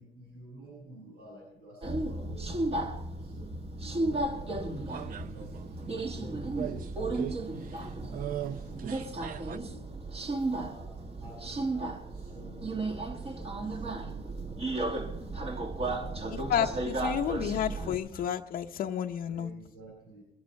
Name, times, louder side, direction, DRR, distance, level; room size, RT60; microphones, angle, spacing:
voice 1, 0.0-2.5 2.9-3.6 4.2-5.7 6.1-8.9 9.5-10.1 10.5-15.0 15.6-16.2 19.3-20.2, right 1 dB, 85° right, -5 dB, 7.7 m, -51 dB
Subway metro underground, 1.8-18.0, right 2 dB, 35° right, 1.8 m, -34 dB
sound 1, 4.1-9.6, right 11 dB, 55° right, 0.7 m, -41 dB
voice 2, 16.3-19.5, left 9 dB, 55° left, 2 dB, 0.7 m, -31 dB
22.5 x 8.8 x 5.8 m, 0.85 s
cardioid pair, 110°, 17 cm